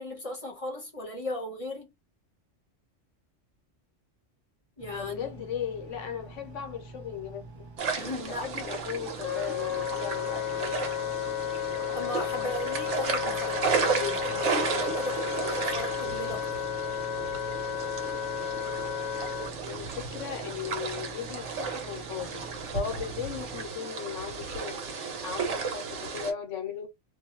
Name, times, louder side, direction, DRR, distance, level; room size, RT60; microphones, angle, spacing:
voice 1, 0.0-1.9 4.8-5.5 8.0-8.5 11.9-16.5, left 2 dB, 35° left, 0.8 m, -37 dB
Engine, 4.8-23.7, right 3 dB, 35° right, 0.4 m, -47 dB
voice 2, 5.0-7.4 8.3-10.8 19.6-22.5 22.7-24.8 25.2-26.9, left 8 dB, 80° left, 1.1 m, -37 dB
sound 1, 7.8-26.3, right 5 dB, 75° right, 1.1 m, -34 dB
Wind instrument woodwind instrument, 9.2-19.5, left 10 dB, 60° left, 0.4 m, -33 dB
2.6 x 2.2 x 2.8 m
omnidirectional pair, 1.3 m